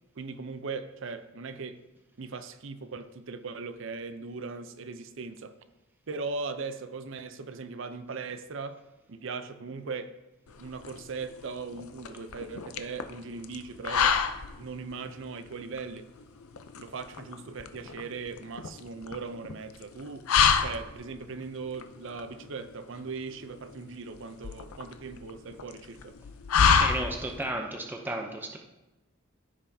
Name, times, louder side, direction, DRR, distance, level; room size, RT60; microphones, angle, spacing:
voice 1, 0.2-1.8 2.2-5.6 6.1-8.8 9.1-10.1 10.6-14.2 14.6-16.1 16.8-20.2 20.6-26.2, right 4 dB, 60° right, 10 dB, 0.6 m, -39 dB
sound 1, 10.5-27.5, left 6 dB, 85° left, 0.5 m, -29 dB
voice 2, 26.8-28.6, right 1 dB, 10° right, 2 dB, 0.6 m, -33 dB
14.5 x 5.6 x 2.7 m, 1.0 s
head